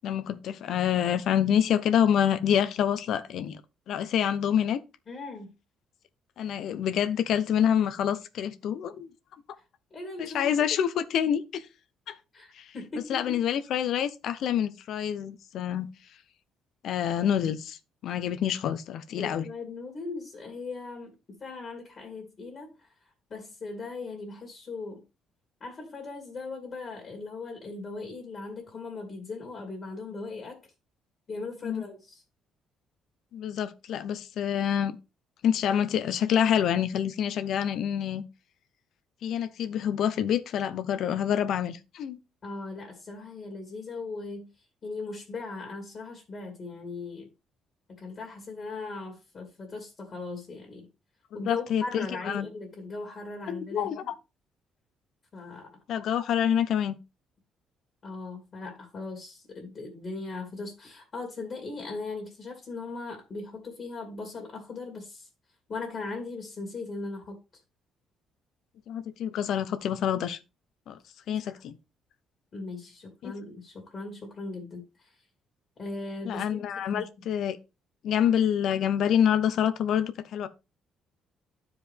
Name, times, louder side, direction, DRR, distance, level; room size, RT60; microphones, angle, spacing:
voice 1, 0.0-3.6 3.9-4.8 6.4-9.1 10.2-11.6 12.1-12.2 12.5-12.7 13.1-15.9 16.8-19.5 31.6-31.8 33.3-35.0 35.4-38.2 39.2-42.2 51.3-52.5 53.5-54.1 55.9-57.0 68.9-70.4 70.9-71.0 71.3-71.7 73.2-73.3 76.3-77.6 78.0-80.5, left 9 dB, 60° left, 0.7 m, -27 dB
voice 2, 5.1-5.5 9.9-10.7 12.3-13.4 19.2-25.0 25.6-30.6 31.3-32.2 42.4-47.3 47.9-50.9 51.3-54.1 55.3-55.8 58.0-65.3 65.7-67.6 71.5-71.6 72.5-75.2 75.8-77.1, left 3 dB, 30° left, 2.2 m, -39 dB
12.5 x 4.8 x 3.4 m
cardioid pair, 160°, 0 cm